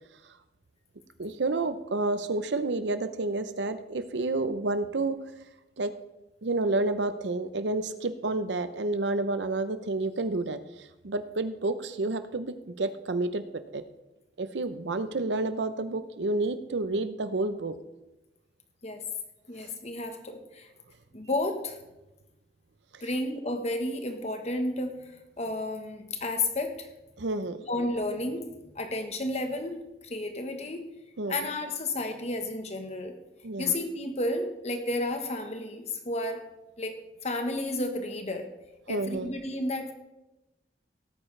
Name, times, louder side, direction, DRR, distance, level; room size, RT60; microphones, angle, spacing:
voice 1, 1.2-5.2 5.8-5.9 6.4-10.6 11.0-13.4 13.7-13.8 14.4-17.7 27.2-27.6 31.2-31.5 33.4-33.7 38.9-39.3, right 2 dB, 80° right, 11 dB, 0.7 m, -29 dB
voice 2, 19.5-20.7 21.1-21.8 23.0-26.9 27.7-30.9 31.3-33.2 33.6-36.4 36.8-37.0 37.2-38.5 38.9-39.9, left 2 dB, 35° left, 6 dB, 1.2 m, -32 dB
17.5 x 8.9 x 3.3 m, 0.99 s
head